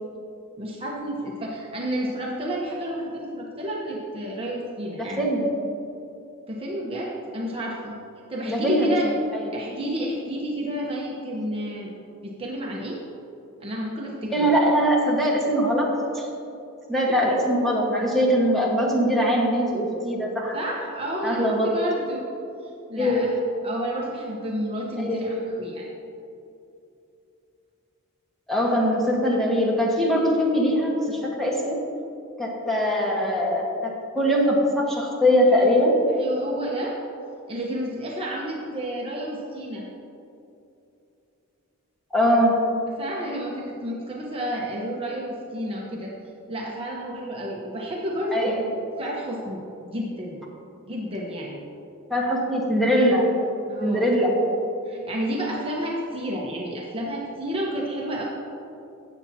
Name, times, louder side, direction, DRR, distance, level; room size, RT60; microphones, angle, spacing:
voice 1, 0.6-5.2 6.5-8.0 8.3-9.1 9.5-11.9 12.2-13.0 13.6-14.5 20.5-22.2 22.6-23.4 23.6-25.9 36.2-37.0 37.5-39.8 43.0-46.1 46.5-48.6 49.0-50.4 50.9-51.6 53.7-54.1 54.8-58.2, right 1 dB, 25° right, -3 dB, 1.0 m, -31 dB
voice 2, 5.0-5.5 8.4-8.9 9.3-9.4 9.8-9.9 14.3-15.9 16.1-16.3 16.9-20.6 21.2-21.7 23.0-23.3 25.0-25.4 28.5-31.8 32.4-36.0 42.1-42.6 48.3-48.6 52.1-53.3 53.8-54.3, equal, ahead, -4 dB, 1.5 m, -22 dB
16.5 x 7.2 x 2.8 m, 2.7 s
head